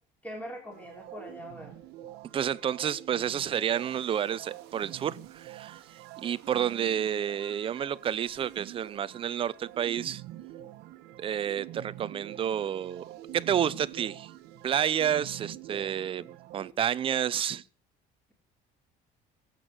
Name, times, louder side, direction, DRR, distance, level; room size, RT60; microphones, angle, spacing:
voice 1, 0.2-1.7, equal, 10° left, 3.9 m, -42 dB
sound 1, 0.7-16.7, right 14 dB, 80° right, 1.4 m, -46 dB
voice 2, 2.3-5.8 6.2-10.2 11.2-13.0 13.3-14.3 14.6-17.6, right 9 dB, 35° right, 0.7 m, -30 dB
24.0 x 8.5 x 6.2 m
cardioid pair, 165°, 17 cm